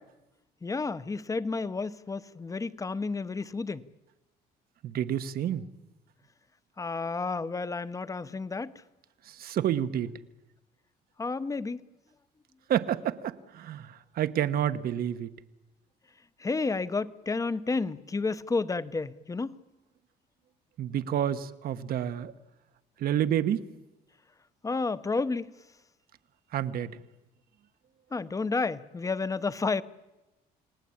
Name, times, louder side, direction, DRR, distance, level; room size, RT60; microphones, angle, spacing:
voice 1, 0.6-3.9 6.8-8.8 11.2-11.8 16.4-19.6 24.6-25.5 28.1-29.8, left 4 dB, 20° left, 0.9 m, -31 dB
voice 2, 4.8-5.7 9.3-10.1 12.7-13.9 14.2-15.3 20.8-22.3 23.0-23.6 26.5-26.9, right 10 dB, 60° right, 1.2 m, -29 dB
29.5 x 18.5 x 8.7 m
cardioid pair, 110°, 17 cm